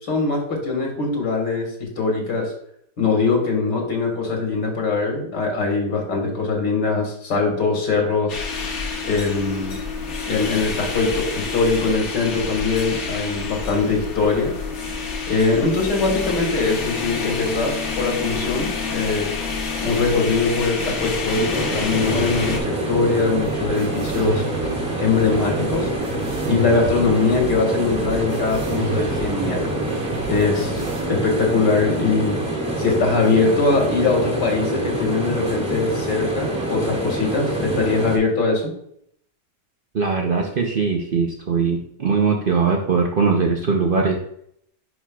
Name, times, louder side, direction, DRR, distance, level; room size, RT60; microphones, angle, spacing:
voice 1, 0.1-2.5 3.0-8.4 9.0-9.8 10.2-14.5 15.3-19.3 19.8-24.4 25.0-25.9 26.5-29.8 30.3-30.8 31.1-32.5 32.8-38.7, left 4 dB, 80° left, 1 dB, 2.2 m, -22 dB
sound 1, 8.3-22.6, left 4 dB, 50° left, 1.0 m, -28 dB
sound 2, 20.8-38.2, right 1 dB, 5° right, 1.4 m, -26 dB
sound 3, 22.0-31.0, right 4 dB, 90° right, 1.7 m, -32 dB
voice 2, 39.9-44.2, right 5 dB, 75° right, 1 dB, 0.5 m, -20 dB
9.8 x 4.5 x 2.3 m, 0.70 s
omnidirectional pair, 1.9 m